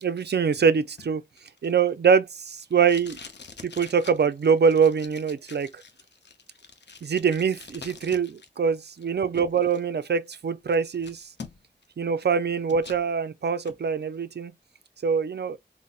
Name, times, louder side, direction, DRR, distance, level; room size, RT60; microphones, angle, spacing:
voice 1, 0.0-1.2 1.6-3.2 3.6-5.7 7.0-11.2 12.0-14.5 15.0-15.6, right 6 dB, 65° right, 0.4 m, -24 dB
Packing tape duct tape, 1.0-8.5 8.8-9.8 10.3-10.4 10.7-11.9 12.2-13.0 13.4-13.8, left 5 dB, 70° left, 0.6 m, -46 dB
3.9 x 2.0 x 2.3 m
wide cardioid pair, 40°, 19 cm